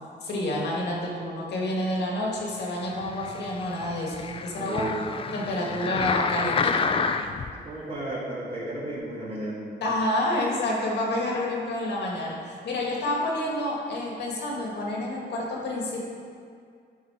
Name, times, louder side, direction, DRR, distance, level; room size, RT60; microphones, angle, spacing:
voice 1, 0.2-4.9 5.3-7.1 9.8-16.0, left 1 dB, 75° left, -2 dB, 1.9 m, -29 dB
sound 1, 2.9-7.5 8.1-8.2, left 5 dB, 30° left, 0.3 m, -29 dB
voice 2, 4.6-5.0 7.6-9.6, right 1 dB, 35° right, -8 dB, 1.9 m, -33 dB
12.0 x 4.6 x 4.8 m, 2.2 s
wide cardioid pair, 150°, 18 cm